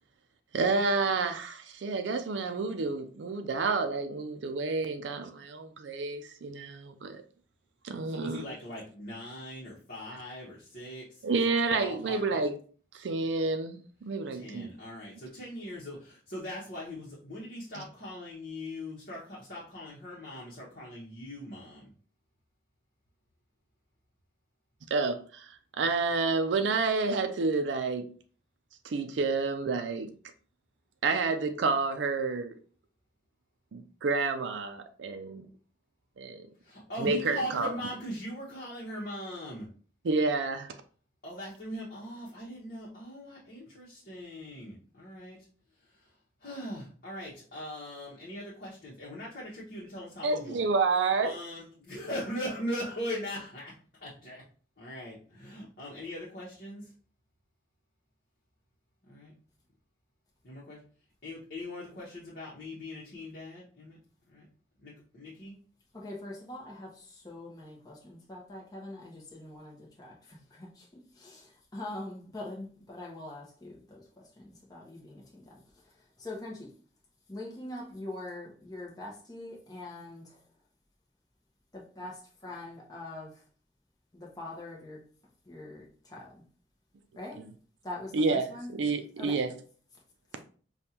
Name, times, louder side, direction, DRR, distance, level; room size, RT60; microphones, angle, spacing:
voice 1, 0.5-7.2 7.8-8.4 11.2-12.6 12.9-14.7 17.7-17.8 24.9-25.5 25.8-28.1 28.8-30.1 31.0-32.5 33.7-35.5 36.2-36.5 37.0-37.8 40.0-40.7 50.2-51.3 88.1-89.5, right 4 dB, 85° right, 0.4 m, -29 dB
voice 2, 8.1-11.1 11.7-12.4 14.3-21.9 36.6-39.7 41.2-45.4 46.4-50.6 51.2-53.7 54.0-54.4 54.8-56.9 59.1-59.3 60.4-60.8 61.2-64.0 64.3-64.4 64.8-65.6, equal, 50° left, 1.0 m, -40 dB
voice 3, 65.9-70.9 71.1-74.0 74.4-75.6 76.2-76.7 77.3-80.4 81.7-83.4 84.1-85.0 85.5-86.4 87.2-87.4 87.8-88.7 89.2-89.4 90.3-90.4, left 2 dB, 20° left, 0.8 m, -43 dB
5.2 x 2.3 x 2.8 m
head